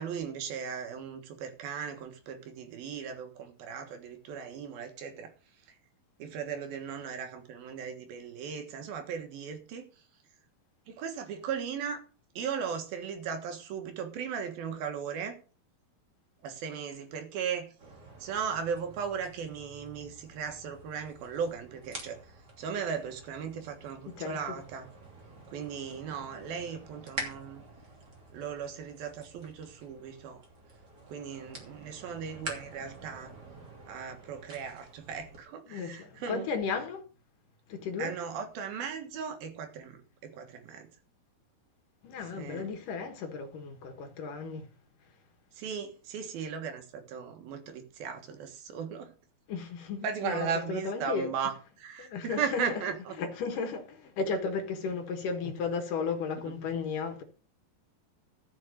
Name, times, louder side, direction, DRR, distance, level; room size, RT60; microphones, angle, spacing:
voice 1, 0.0-5.3 6.2-9.9 10.9-12.0 12.4-15.4 16.4-17.7 18.2-22.2 22.6-24.9 25.5-27.6 28.3-30.4 31.1-33.3 33.9-36.5 38.0-40.9 42.3-42.7 45.6-49.1 50.0-53.2 56.4-56.5, right 7 dB, 75° right, 3.4 m, -37 dB
sound 1, 17.8-35.4, right 2 dB, 30° right, 3.0 m, -47 dB
voice 2, 35.7-37.0 37.7-38.1 42.0-44.7 49.5-51.3 52.0-52.7 53.2-57.2, left 5 dB, 65° left, 3.0 m, -34 dB
13.5 x 6.3 x 6.5 m
omnidirectional pair, 4.2 m